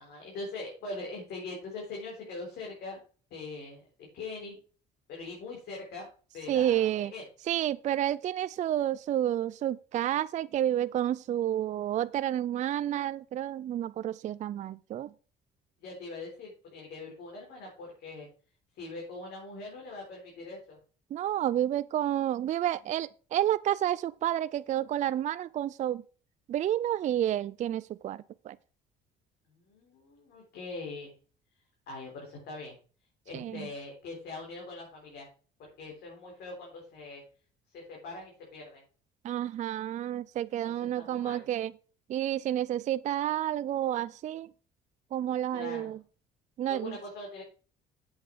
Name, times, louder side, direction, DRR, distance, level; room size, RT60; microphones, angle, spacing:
voice 1, 0.0-3.0 3.3-4.6 5.1-6.1 6.3-7.2 15.8-18.3 18.8-20.8 29.5-31.2 31.9-32.7 33.3-35.3 35.6-37.2 37.7-38.8 40.6-41.5 45.5-45.9 46.7-47.4, left 3 dB, 75° left, 4.0 m, -42 dB
voice 2, 6.5-7.1 7.5-15.1 21.1-26.0 26.5-28.6 33.3-33.7 39.2-41.7 42.1-44.5 45.1-46.0 46.6-47.0, right 11 dB, 45° right, 0.4 m, -30 dB
8.1 x 8.1 x 4.6 m
cardioid pair, 110°, 17 cm